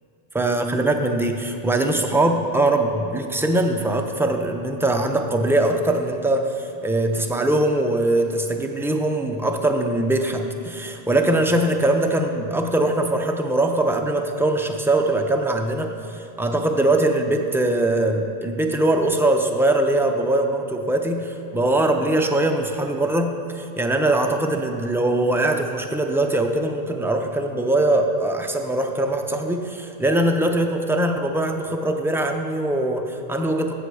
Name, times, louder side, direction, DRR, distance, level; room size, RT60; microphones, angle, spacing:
voice 1, 0.3-33.7, right 1 dB, 5° right, 3 dB, 0.4 m, -22 dB
14.5 x 6.5 x 4.8 m, 2.6 s
omnidirectional pair, 1.1 m